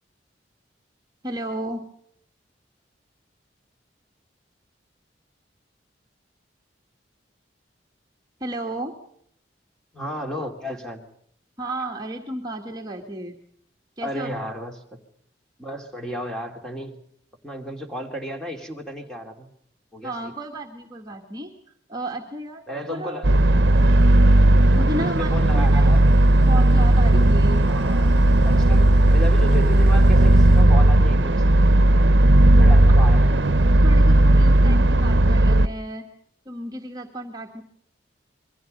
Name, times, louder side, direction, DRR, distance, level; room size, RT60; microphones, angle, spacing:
voice 1, 1.2-1.9 8.4-9.0 11.6-13.4 14.0-14.3 20.0-21.5 21.9-23.2 24.7-25.9 26.5-27.7 33.4-36.1 36.5-37.6, right 1 dB, 25° right, 2 dB, 1.8 m, -33 dB
voice 2, 9.9-11.0 14.0-15.0 15.6-17.0 17.4-19.5 19.9-20.3 22.7-23.3 24.6-26.1 27.6-31.6 32.6-33.5, equal, 5° left, 3 dB, 2.8 m, -33 dB
sound 1, 23.2-35.7, right 1 dB, 75° right, 0.9 m, -15 dB
sound 2, 23.6-30.6, right 2 dB, 60° left, 5.8 m, -38 dB
27.5 x 23.0 x 5.5 m, 0.67 s
head